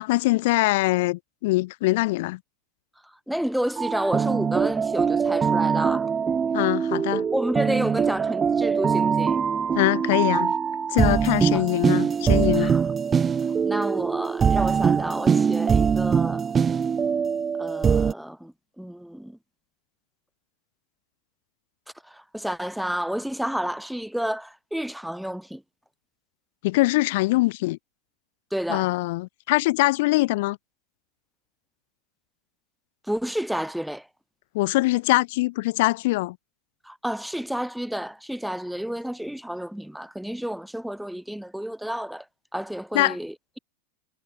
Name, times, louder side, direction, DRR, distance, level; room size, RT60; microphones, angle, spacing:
voice 1, 0.0-2.4 6.5-7.3 9.7-10.5 10.9-12.8 26.6-27.8 28.7-30.6 34.5-36.4 42.9-43.2, left 21 dB, 60° left, 0.5 m, -23 dB
voice 2, 3.3-6.1 7.3-9.4 11.5-11.6 12.5-12.8 13.6-16.4 17.6-19.4 22.0-25.6 28.5-28.9 33.1-34.1 36.8-42.2 42.5-43.6, equal, ahead, 0.8 m, -30 dB
sound 1, 3.8-18.1, right 6 dB, 20° right, 0.4 m, -23 dB
supercardioid pair, 140°, 0 cm